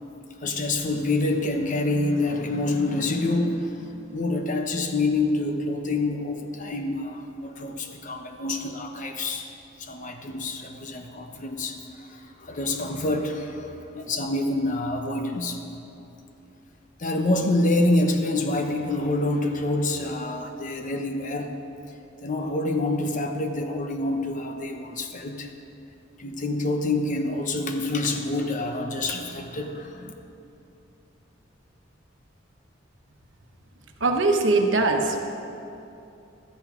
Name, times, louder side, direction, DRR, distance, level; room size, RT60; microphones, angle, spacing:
voice 1, 0.4-9.5 9.8-15.6 17.0-21.5 22.2-25.5 26.2-30.1, left 2 dB, 45° left, 4 dB, 0.9 m, -27 dB
voice 2, 34.0-35.2, right 3 dB, 75° right, 3 dB, 1.1 m, -21 dB
13.0 x 10.0 x 5.1 m, 2.8 s
head